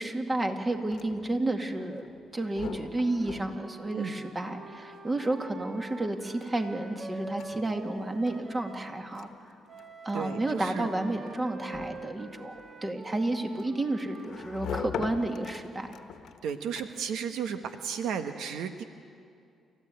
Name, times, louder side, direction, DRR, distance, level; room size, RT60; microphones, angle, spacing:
voice 1, 0.0-2.1 2.3-9.3 10.0-15.9, right 2 dB, 25° right, 5 dB, 2.2 m, -31 dB
sound 1, 0.7-17.2, left 8 dB, 75° left, 1.2 m, -45 dB
Wind instrument woodwind instrument, 2.6-9.0 9.7-15.7, right 2 dB, 40° right, 2.2 m, -46 dB
voice 2, 10.1-10.9 16.4-18.8, right 7 dB, 80° right, 8 dB, 1.1 m, -34 dB
29.5 x 14.5 x 9.2 m, 2.4 s
cardioid pair, 90°, 0 cm